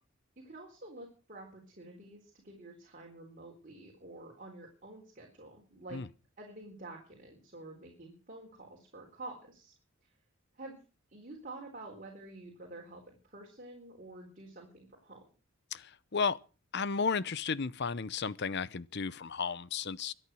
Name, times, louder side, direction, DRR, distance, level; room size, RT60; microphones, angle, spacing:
voice 1, 0.4-6.0 6.4-9.7 10.0-10.1 10.5-10.8 11.1-15.2, right 2 dB, 40° right, 4.0 m, -49 dB
voice 2, 15.7-16.4 16.7-20.1, left 5 dB, 55° left, 0.7 m, -33 dB
23.5 x 9.0 x 6.2 m
head